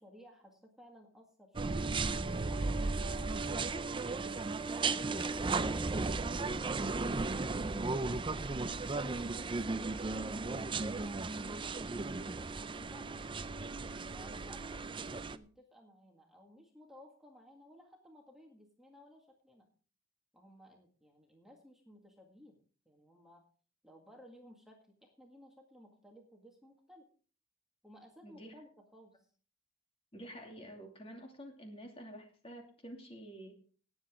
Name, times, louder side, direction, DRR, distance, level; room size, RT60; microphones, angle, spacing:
voice 1, 0.0-2.0 2.5-4.1 4.6-8.5 9.0-13.2 14.1-19.7 20.3-22.6 22.9-23.4 23.8-27.0 27.8-29.3, equal, ahead, 0 dB, 1.9 m, -58 dB
sound 1, 1.6-15.4, right 3 dB, 25° right, 0.5 m, -35 dB
voice 2, 28.2-28.5 30.1-33.5, equal, 30° left, 2 dB, 2.6 m, -49 dB
18.5 x 8.0 x 3.7 m, 0.42 s
head